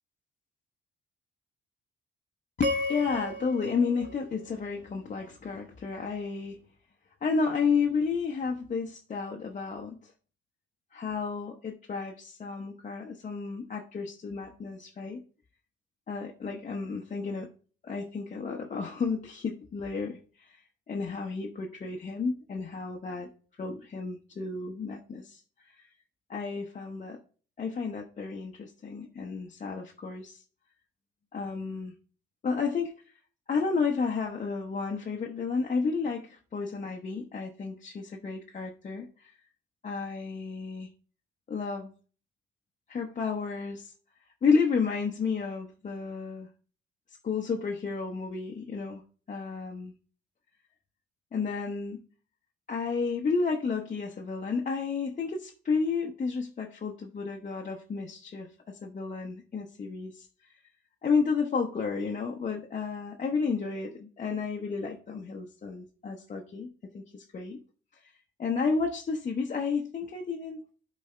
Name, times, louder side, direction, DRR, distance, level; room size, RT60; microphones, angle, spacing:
voice 1, 2.6-6.6 7.2-10.0 10.9-15.2 16.1-17.5 17.8-20.6 20.9-23.3 23.6-25.4 25.8-25.9 26.3-27.2 27.6-30.4 31.3-31.9 32.4-32.9 33.5-39.3 39.8-40.9 41.5-41.9 42.9-43.9 44.4-46.5 47.2-49.0 49.3-49.9 51.3-52.0 52.7-60.3 61.0-66.7 66.9-67.6 68.4-70.6, left 5 dB, 40° left, 0 dB, 0.9 m, -31 dB
sound 1, 2.6-5.0, left 1 dB, 65° right, 1.4 m, -35 dB
11.0 x 4.2 x 3.3 m, 0.41 s
cardioid pair, 90°, 20 cm